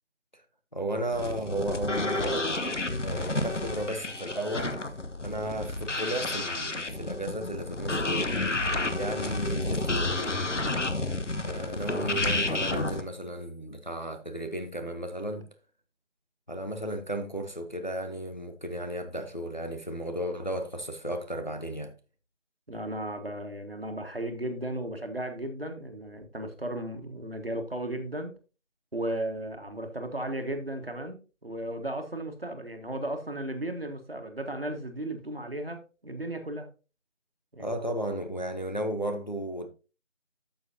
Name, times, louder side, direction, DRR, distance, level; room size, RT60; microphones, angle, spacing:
voice 1, 0.7-4.8 5.2-8.4 8.9-10.4 11.4-15.5 16.5-21.9 37.6-39.7, right 1 dB, 40° left, 0.8 m, -34 dB
sound 1, 1.1-13.0, left 2 dB, 75° left, 1.1 m, -30 dB
voice 2, 22.7-28.3 28.9-36.7 37.5-37.8, right 1 dB, 50° right, 1.5 m, -35 dB
11.5 x 6.4 x 2.7 m
figure-of-eight pair, 175°, 37 cm